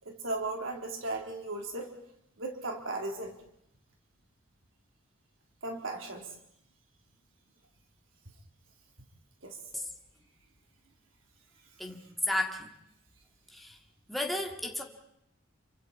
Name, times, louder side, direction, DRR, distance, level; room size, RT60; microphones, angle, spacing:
voice 1, 0.0-1.9 2.4-3.3 5.6-6.3 9.4-9.6, right 2 dB, 65° right, 2 dB, 3.7 m, -36 dB
voice 2, 11.8-12.7 13.5-13.8 14.1-14.8, left 1 dB, ahead, 0 dB, 2.2 m, -33 dB
29.5 x 25.0 x 4.4 m, 0.78 s
head